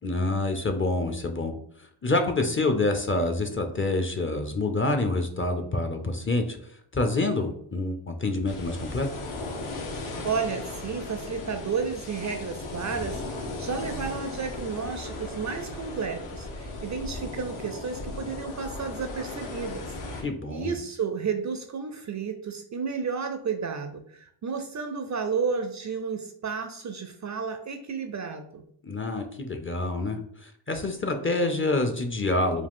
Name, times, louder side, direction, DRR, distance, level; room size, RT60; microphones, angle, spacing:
voice 1, 0.0-1.6 2.0-6.6 6.9-9.1 20.2-20.8 28.8-32.7, left 2 dB, 25° left, 5 dB, 0.4 m, -27 dB
sound 1, 8.5-20.2, left 2 dB, 85° left, 1.3 m, -37 dB
voice 2, 10.2-28.6, right 5 dB, 40° right, 7 dB, 0.4 m, -32 dB
4.9 x 2.4 x 3.6 m, 0.64 s
wide cardioid pair, 150°, 49 cm